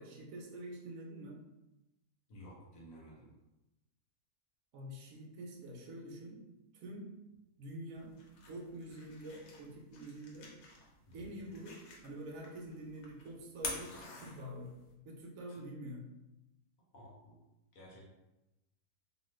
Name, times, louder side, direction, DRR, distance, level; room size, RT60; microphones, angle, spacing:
voice 1, 0.0-1.4 4.7-6.4 6.7-7.1 7.6-8.1 8.4-10.5 11.1-11.8 12.0-14.7 15.0-16.0, right 1 dB, 70° right, 0 dB, 1.0 m, -46 dB
voice 2, 2.3-3.3 11.1-11.3 15.5-15.6 16.9-17.4 17.7-18.0, equal, 65° left, -3 dB, 1.2 m, -54 dB
sound 1, 7.9-14.9, left 3 dB, 90° left, 1.2 m, -48 dB
2.8 x 2.4 x 3.1 m, 0.98 s
omnidirectional pair, 1.6 m